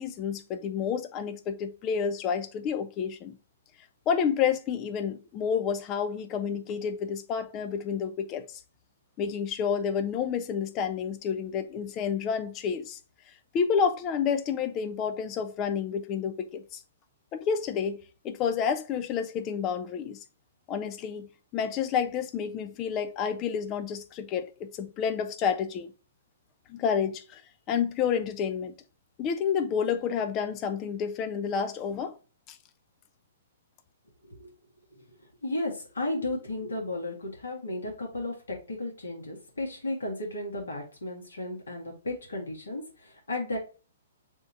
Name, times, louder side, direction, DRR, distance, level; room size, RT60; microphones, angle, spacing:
voice 1, 0.0-3.4 4.1-8.6 9.2-13.0 13.3-16.8 17.3-20.2 20.7-25.9 26.7-27.4 27.7-28.7 29.2-32.2 32.5-32.6, left 7 dB, 30° left, 0.5 m, -29 dB
voice 2, 35.4-43.6, left 2 dB, 75° left, 1.7 m, -34 dB
3.5 x 2.7 x 4.5 m
figure-of-eight pair, 120°, 0 cm